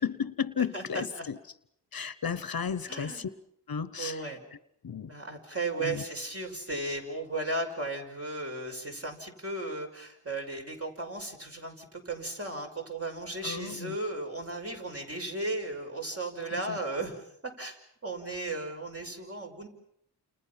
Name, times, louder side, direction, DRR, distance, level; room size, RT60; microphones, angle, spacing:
voice 1, 0.0-1.4 1.9-3.3 3.7-4.4 4.8-5.1 5.7-6.0 13.4-14.0 16.5-16.8, left 6 dB, 55° left, 14 dB, 1.0 m, -34 dB
voice 2, 0.7-1.3 2.9-3.3 4.0-4.4 5.1-19.7, right 2 dB, 35° right, 3 dB, 5.8 m, -35 dB
30.0 x 28.5 x 5.9 m, 0.73 s
wide cardioid pair, 105°, 42 cm